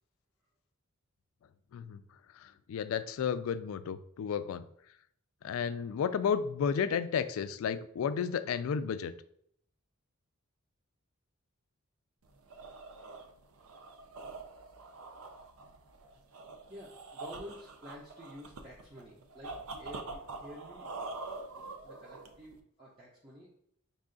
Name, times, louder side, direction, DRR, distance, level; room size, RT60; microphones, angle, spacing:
voice 1, 2.4-4.6 5.4-9.1, left 7 dB, 70° left, 13 dB, 0.3 m, -32 dB
sound 1, 12.2-22.6, right 3 dB, 75° right, 0.5 m, -45 dB
voice 2, 16.7-20.9 21.6-23.6, equal, 20° right, -5 dB, 0.6 m, -50 dB
5.3 x 2.4 x 3.7 m, 0.70 s
head